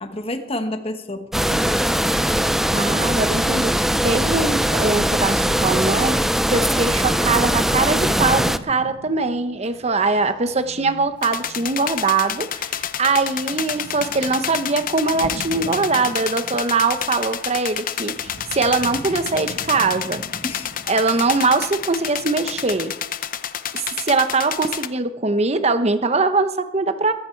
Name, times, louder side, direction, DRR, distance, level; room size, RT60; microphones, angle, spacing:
voice 1, 0.0-2.1 20.4-20.7, left 1 dB, 30° left, 7 dB, 1.3 m, -30 dB
sound 1, 1.3-8.6, equal, ahead, 0.4 m, -20 dB
voice 2, 2.7-6.2 6.5-20.2 20.9-22.9 23.7-27.1, right 3 dB, 35° right, 10 dB, 0.9 m, -22 dB
sound 2, 6.9-22.8, right 1 dB, 85° right, 1.2 m, -41 dB
sound 3, 11.2-24.9, left 9 dB, 50° left, 0.7 m, -29 dB
22.0 x 9.4 x 4.6 m, 0.87 s
head